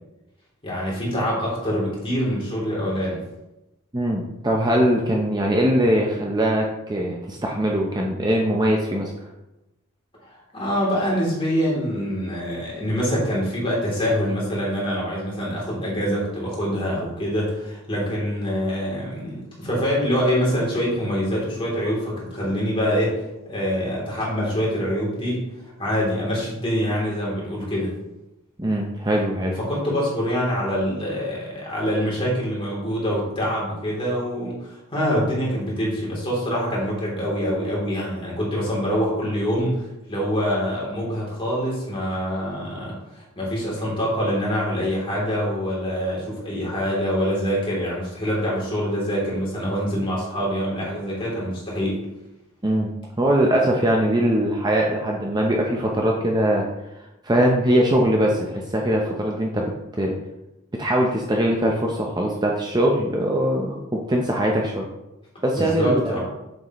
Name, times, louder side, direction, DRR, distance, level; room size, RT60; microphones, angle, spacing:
voice 1, 0.6-3.2 10.2-23.2 23.4-25.4 25.8-27.9 29.6-39.8 40.1-52.0 65.6-66.2, equal, 25° left, -5 dB, 3.2 m, -25 dB
voice 2, 3.9-9.1 28.6-29.5 52.6-56.7 57.2-60.1 60.7-64.9 65.4-66.2, right 1 dB, 20° right, 0 dB, 0.7 m, -21 dB
7.9 x 7.6 x 3.1 m, 0.95 s
head